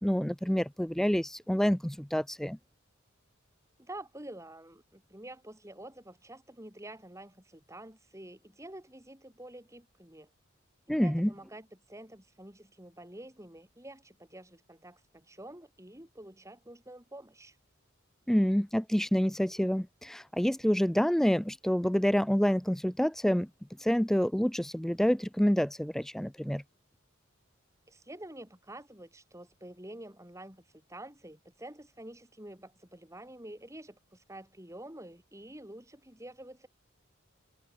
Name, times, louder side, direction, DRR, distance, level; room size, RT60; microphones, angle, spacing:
voice 1, 0.0-2.6 10.9-11.3 18.3-23.5 23.8-26.6, equal, ahead, 0.3 m, -27 dB
voice 2, 3.8-10.3 10.9-17.6 27.9-36.7, right 1 dB, 15° right, 5.3 m, -48 dB
head